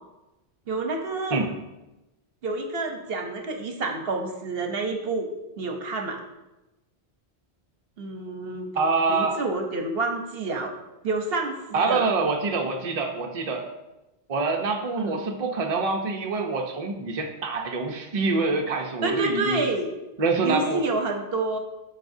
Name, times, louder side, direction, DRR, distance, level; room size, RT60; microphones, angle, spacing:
voice 1, 0.7-1.4 2.4-5.3 5.6-6.2 8.0-8.7 9.1-10.7 11.0-12.1 15.0-15.2 19.0-19.9 20.4-21.6, right 3 dB, 65° right, 4 dB, 1.0 m, -28 dB
voice 2, 8.7-9.4 11.7-13.6 14.3-19.6 20.2-20.8, right 3 dB, 40° right, 1 dB, 0.8 m, -25 dB
12.5 x 4.8 x 2.7 m, 1.0 s
omnidirectional pair, 1.1 m